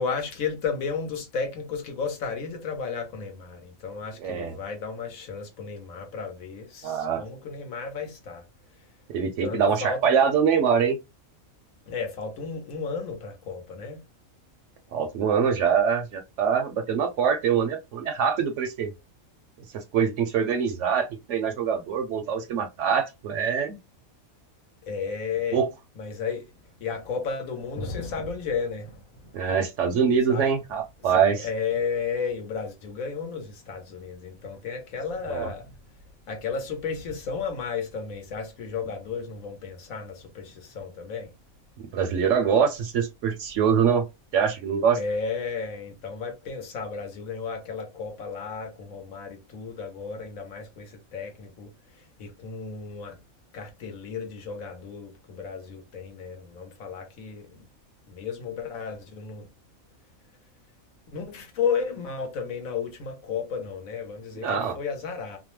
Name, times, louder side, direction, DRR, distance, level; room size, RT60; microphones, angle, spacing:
voice 1, 0.0-8.4 9.4-10.0 11.9-14.0 24.8-25.6 25.9-29.6 30.3-30.5 31.0-35.8 36.3-41.3 44.9-53.2 53.5-57.7 58.1-59.5 61.1-65.4, left 5 dB, 75° left, 1.2 m, -33 dB
voice 2, 4.2-4.5 6.8-7.2 9.1-11.0 14.9-18.9 19.7-23.8 25.5-25.7 29.3-31.5 35.3-35.5 41.9-44.0 44.3-45.0 64.4-64.8, right 7 dB, 70° right, 0.8 m, -24 dB
2.8 x 2.0 x 3.0 m
omnidirectional pair, 1.5 m